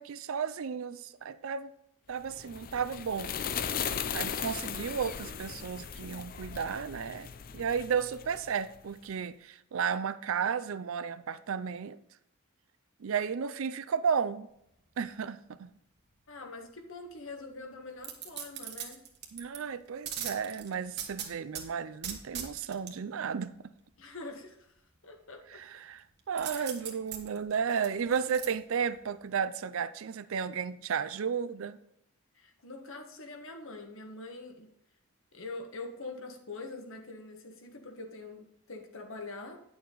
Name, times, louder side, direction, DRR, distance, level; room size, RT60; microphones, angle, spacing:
voice 1, 0.0-1.7 2.1-3.3 4.1-7.3 7.5-12.0 13.0-14.5 15.0-15.7 19.3-23.5 25.5-31.8, right 6 dB, 65° right, 14 dB, 0.4 m, -33 dB
sound 1, 2.2-8.9, left 7 dB, 40° left, 0.4 m, -38 dB
voice 2, 16.3-19.0 24.0-24.7 25.0-25.6 26.5-26.7 32.3-34.7 35.3-39.6, left 3 dB, 65° left, 3 dB, 1.5 m, -44 dB
sound 2, 18.0-19.6 20.1-21.6 22.0-22.9 26.4-28.5 28.9-29.0, right 8 dB, 50° right, 1.3 m, -39 dB
10.0 x 6.9 x 3.9 m, 0.77 s
head